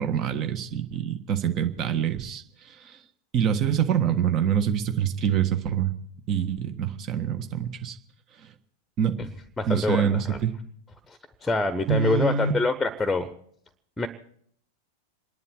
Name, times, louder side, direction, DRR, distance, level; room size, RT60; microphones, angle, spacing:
voice 1, 0.0-3.0 3.3-5.9 6.3-8.0 9.0-9.2 9.7-10.5 11.9-12.5, right 8 dB, 35° right, 7 dB, 1.5 m, -25 dB
voice 2, 9.6-10.4 11.1-13.3 14.0-14.1, left 2 dB, 10° left, 13 dB, 1.1 m, -26 dB
27.5 x 11.0 x 4.5 m, 0.65 s
figure-of-eight pair, 90°, 0 cm